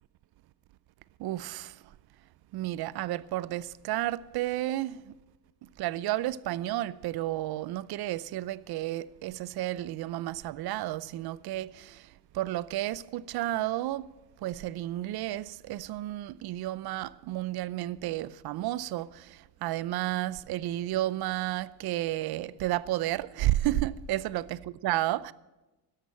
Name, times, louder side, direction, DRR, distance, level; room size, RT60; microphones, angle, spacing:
voice 1, 1.2-1.9 2.5-5.1 5.6-14.1 14.4-24.6 24.8-25.3, right 15 dB, 60° right, 0.6 m, -32 dB
12.5 x 11.0 x 7.7 m
cardioid pair, 120°, 42 cm